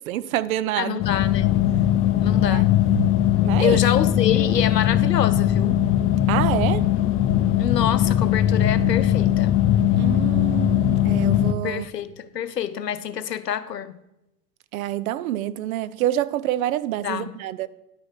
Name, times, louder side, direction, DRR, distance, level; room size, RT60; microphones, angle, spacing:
voice 1, 0.1-1.0 2.4-2.6 3.4-3.8 6.3-6.9 9.9-11.9 14.7-17.7, right 13 dB, 60° right, 0.6 m, -27 dB
voice 2, 0.8-1.6 2.2-2.8 3.6-5.8 7.6-9.6 11.6-14.0 17.0-17.3, left 9 dB, 85° left, 0.7 m, -26 dB
sound 1, 1.0-11.5, left 11 dB, 25° left, 0.6 m, -20 dB
11.0 x 6.4 x 4.6 m
figure-of-eight pair, 90°, 48 cm